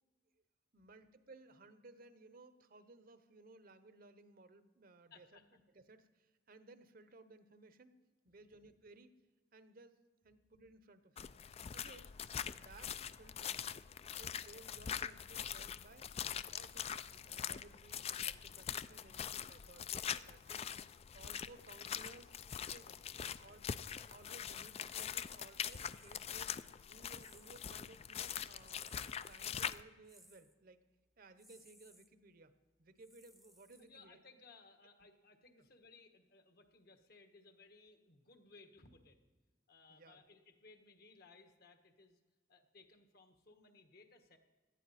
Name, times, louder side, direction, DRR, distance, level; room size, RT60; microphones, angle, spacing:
voice 1, 0.7-8.0 8.2-9.2 9.5-10.0 10.2-11.4 11.7-12.1 12.6-13.7 14.2-16.1 16.5-20.7 21.1-22.4 22.7-22.9 23.4-23.7 24.1-26.6 26.9-30.8 31.2-32.5 32.8-34.2 39.9-40.2, right 2 dB, 55° right, 11 dB, 0.8 m, -60 dB
voice 2, 5.1-5.5 11.9-12.0 22.8-23.5 33.8-39.2 39.7-42.2 42.5-44.4, left 3 dB, 60° left, 6 dB, 1.4 m, -62 dB
sound 1, 11.2-29.8, left 8 dB, 35° left, 0.3 m, -43 dB
sound 2, 25.6-26.4 27.2-27.8 28.7-29.5 30.0-30.5 31.4-32.1 33.0-34.1, equal, ahead, 0.7 m, -64 dB
17.5 x 12.0 x 4.2 m, 1.3 s
head